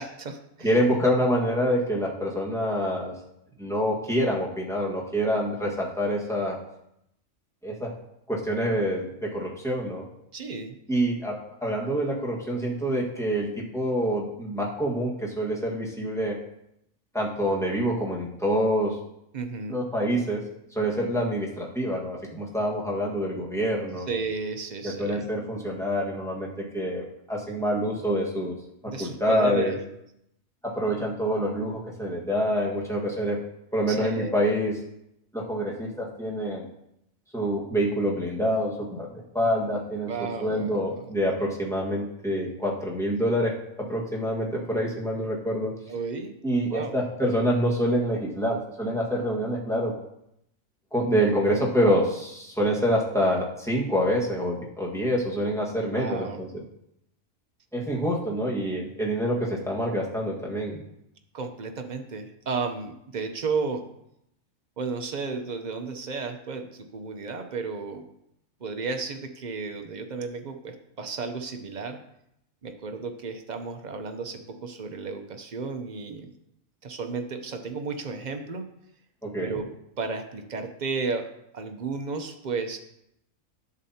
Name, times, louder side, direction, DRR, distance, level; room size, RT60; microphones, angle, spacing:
voice 1, 0.0-0.7 10.3-10.8 19.3-19.8 24.1-25.3 28.8-29.8 33.9-34.5 40.1-41.1 45.9-46.3 46.7-47.0 55.9-56.4 61.3-63.9 64.8-68.0 68.6-72.0 72.6-76.3 76.8-78.6 79.4-79.7 80.0-82.8, right 4 dB, 40° right, 6 dB, 0.7 m, -33 dB
voice 2, 0.6-3.1 3.6-6.6 7.6-7.9 8.3-10.0 10.9-16.4 17.1-19.0 19.7-20.4 20.7-24.1 24.8-28.6 29.0-29.8 30.6-33.4 33.7-34.8 35.3-36.7 37.3-40.1 40.4-45.7 46.4-49.9 50.9-56.5 57.7-60.8 79.2-79.6, equal, ahead, -4 dB, 1.5 m, -26 dB
11.0 x 7.4 x 2.8 m, 0.79 s
omnidirectional pair, 1.4 m